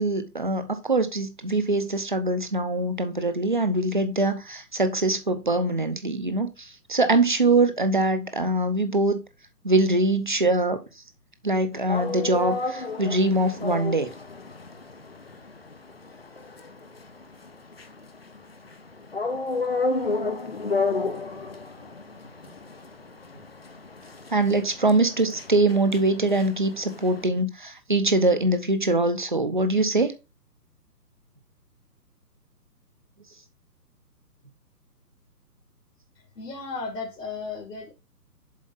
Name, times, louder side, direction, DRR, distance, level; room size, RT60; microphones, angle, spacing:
voice 1, 0.0-9.2 9.6-10.8 11.4-14.1 24.3-30.1, right 2 dB, 30° right, 0.7 m, -23 dB
sound 1, 11.7-27.3, left 3 dB, 40° left, 0.6 m, -32 dB
voice 2, 36.4-37.9, left 4 dB, 75° left, 2.1 m, -34 dB
7.4 x 4.4 x 3.9 m
hypercardioid pair, 175°, 49 cm